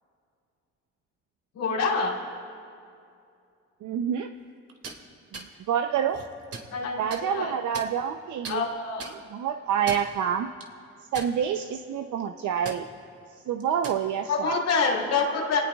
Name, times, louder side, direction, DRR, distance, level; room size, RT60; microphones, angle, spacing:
voice 1, 1.5-2.1 6.7-7.6 8.5-9.1 14.3-15.6, left 4 dB, 85° left, -5 dB, 3.5 m, -26 dB
voice 2, 3.8-4.3 5.3-6.2 7.0-8.7 9.3-10.5 11.1-12.9 13.5-14.6, right 8 dB, 75° right, 6 dB, 0.7 m, -27 dB
sound 1, 4.7-5.0 5.3-5.5 6.1-6.7 7.1-7.2 7.7-8.2 8.4-8.6 9.0-9.2 9.7-10.1 10.6-10.7 11.1-11.7 12.0-12.2 12.7-12.8 13.6-14.0, right 4 dB, 50° right, 2.3 m, -39 dB
28.0 x 19.0 x 2.4 m, 2.5 s
cardioid pair, 90°, 30 cm